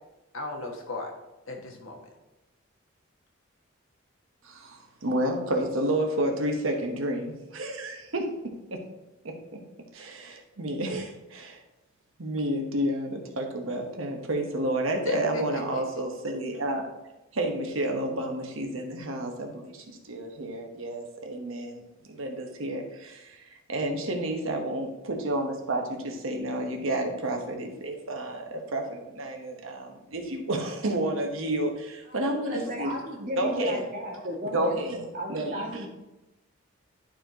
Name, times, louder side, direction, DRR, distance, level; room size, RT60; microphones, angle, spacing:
voice 1, 0.3-1.1 1.5-2.1 15.1-15.8, left 2 dB, 75° left, 1 dB, 1.4 m, -36 dB
voice 2, 4.4-8.2 8.7-8.8 9.9-11.6 12.2-16.9 17.3-21.8 22.1-32.9 33.4-33.8 34.1-34.3 34.5-35.8, right 1 dB, 80° right, 2 dB, 1.2 m, -30 dB
voice 3, 32.1-34.8 35.1-35.9, equal, 45° right, -1 dB, 1.7 m, -34 dB
11.5 x 4.4 x 3.0 m, 0.99 s
head